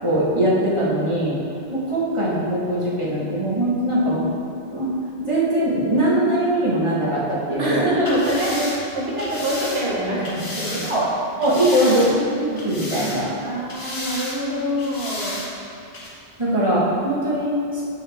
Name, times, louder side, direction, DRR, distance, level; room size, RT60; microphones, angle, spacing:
voice 1, 0.0-1.4 1.7-4.3 4.7-4.9 5.2-7.9 10.8-11.1 11.4-13.3 16.4-17.8, right 1 dB, 30° right, -8 dB, 1.4 m, -21 dB
voice 2, 7.6-10.9 11.7-11.9 13.4-15.4, equal, 85° right, -5 dB, 1.5 m, -25 dB
sound 1, 8.0-11.0 11.4-12.3 12.6-13.4 13.7-14.4 14.8-15.5 15.9-16.1, left 1 dB, 75° left, 1.5 m, -32 dB
7.1 x 5.6 x 3.4 m, 2.5 s
omnidirectional pair, 1.0 m